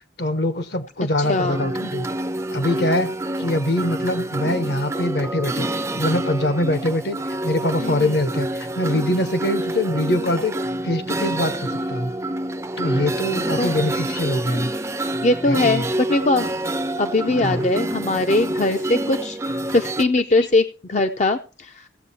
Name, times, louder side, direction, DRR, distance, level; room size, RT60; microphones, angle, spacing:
voice 1, 0.2-2.1 2.5-3.1 3.4-5.7 6.0-7.2 7.4-10.5 10.8-12.1 12.8-14.7 15.5-15.9 17.4-17.7, left 1 dB, 60° left, 10 dB, 1.1 m, -23 dB
sound 1, 1.2-20.1, right 1 dB, 15° right, 0.5 m, -27 dB
voice 2, 1.3-1.7 7.8-8.2 13.6-13.9 15.2-16.5 17.0-21.9, left 2 dB, 40° left, 7 dB, 0.6 m, -21 dB
16.5 x 7.6 x 4.2 m, 0.34 s
head